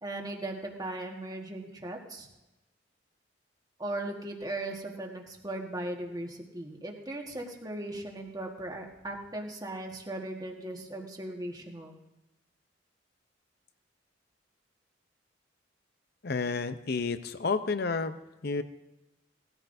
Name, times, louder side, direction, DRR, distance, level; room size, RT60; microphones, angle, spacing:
voice 1, 0.0-2.3 3.8-12.0, right 1 dB, 20° right, 1 dB, 1.5 m, -38 dB
voice 2, 16.2-18.1 18.4-18.6, left 4 dB, 60° left, 11 dB, 0.7 m, -30 dB
18.5 x 13.0 x 2.7 m, 0.99 s
head